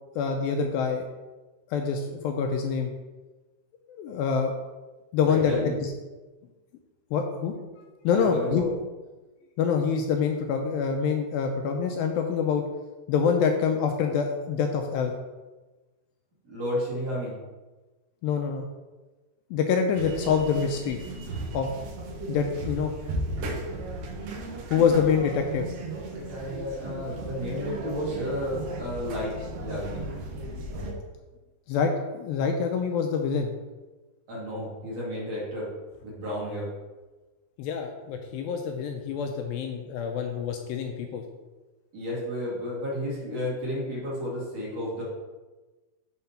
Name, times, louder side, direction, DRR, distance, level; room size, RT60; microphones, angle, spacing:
voice 1, 0.2-1.1 1.7-2.9 3.9-4.5 5.1-5.9 7.1-7.5 8.0-8.7 9.6-12.6 13.1-15.1 18.2-18.6 19.5-21.0 21.5-21.7 22.3-22.9 24.7-25.6 31.7-33.5 37.6-41.2, left 6 dB, 80° left, 3 dB, 2.2 m, -26 dB
voice 2, 5.2-5.8 8.1-8.8 16.5-17.3 26.1-29.3 29.6-30.0 34.3-35.7 36.0-36.7 41.9-45.0, left 1 dB, 45° right, -7 dB, 2.9 m, -32 dB
sound 1, 20.0-30.9, right 2 dB, 70° right, 2.6 m, -36 dB
7.2 x 3.8 x 5.6 m, 1.2 s
omnidirectional pair, 4.4 m